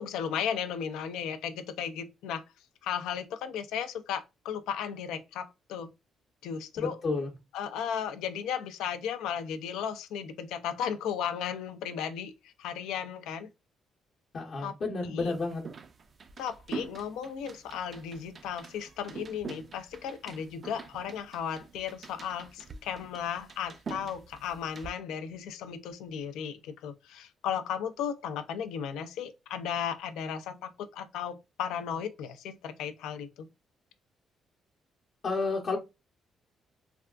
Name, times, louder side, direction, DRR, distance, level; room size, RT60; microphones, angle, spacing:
voice 1, 0.0-2.4 2.8-5.9 6.4-7.0 7.5-13.5 14.6-14.7 15.0-15.3 16.4-33.5, left 8 dB, 90° left, 0.4 m, -35 dB
voice 2, 6.8-7.3 14.3-15.6 35.2-35.8, left 3 dB, 60° left, 0.8 m, -31 dB
sound 1, 15.2-24.9, right 5 dB, 45° right, 0.4 m, -45 dB
3.4 x 2.3 x 2.3 m
cardioid pair, 90°, 0 cm